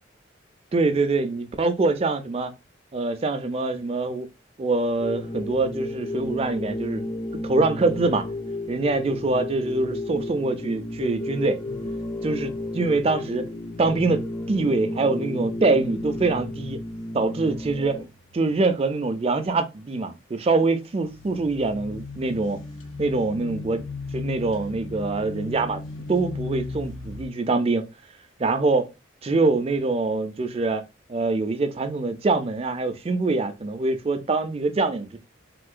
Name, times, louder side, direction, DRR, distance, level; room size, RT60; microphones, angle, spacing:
voice 1, 0.7-2.5 2.9-4.3 4.6-7.1 7.4-8.3 8.7-11.6 12.2-13.5 13.8-16.8 17.1-18.0 18.3-22.6 23.0-23.8 24.1-25.8 26.1-27.9 28.4-28.9 29.2-30.8 31.1-35.2, right 3 dB, 30° right, 0.4 m, -24 dB
sound 1, 5.0-18.0, left 1 dB, 25° left, 0.5 m, -32 dB
sound 2, 11.6-12.6 14.1-18.7 19.0-19.5 21.0-27.3, left 3 dB, 85° left, 0.7 m, -38 dB
3.6 x 2.6 x 2.4 m
head